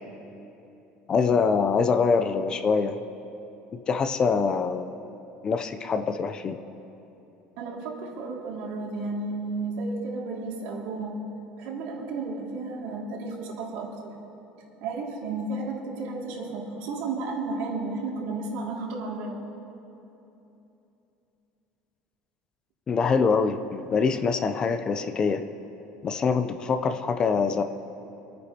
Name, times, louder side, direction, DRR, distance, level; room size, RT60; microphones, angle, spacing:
voice 1, 1.1-3.0 3.7-4.9 5.4-6.6 22.9-25.4 26.0-27.6, left 5 dB, 25° left, 9 dB, 0.5 m, -24 dB
voice 2, 7.6-11.2 11.6-14.1 14.8-19.4, right 3 dB, 70° right, -2 dB, 2.4 m, -33 dB
28.0 x 9.4 x 2.9 m, 3.0 s
cardioid pair, 155°, 3 cm